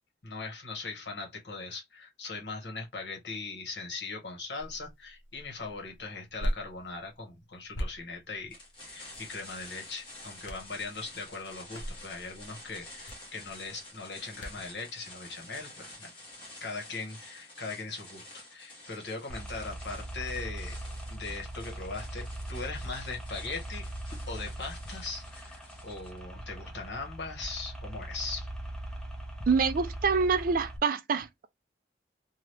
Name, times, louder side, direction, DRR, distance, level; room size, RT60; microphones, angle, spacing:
voice 1, 0.2-16.1 16.6-20.8 21.1-23.9 24.1-28.5, left 3 dB, 65° left, 1.2 m, -40 dB
sound 1, 4.6-14.8, equal, 85° left, 0.7 m, -41 dB
sound 2, 8.5-26.2, left 2 dB, 25° left, 1.2 m, -49 dB
sound 3, 19.3-30.8, right 1 dB, 5° left, 0.6 m, -40 dB
voice 2, 29.5-31.5, right 5 dB, 50° right, 0.3 m, -26 dB
2.9 x 2.3 x 3.2 m
head